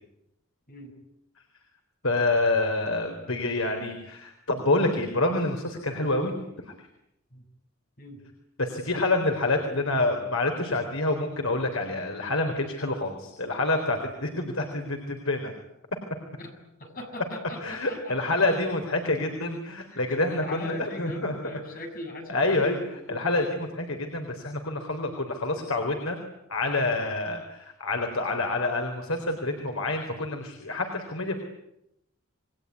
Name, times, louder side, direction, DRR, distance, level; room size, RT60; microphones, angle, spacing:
voice 1, 2.0-6.3 6.6-6.7 8.6-15.5 17.6-21.3 22.3-22.8 23.1-26.2 26.5-31.4, left 2 dB, 75° left, 4 dB, 3.9 m, -27 dB
voice 2, 16.4-18.6 19.9-23.2, left 1 dB, 45° left, 4 dB, 7.0 m, -41 dB
28.5 x 22.0 x 9.5 m, 0.82 s
head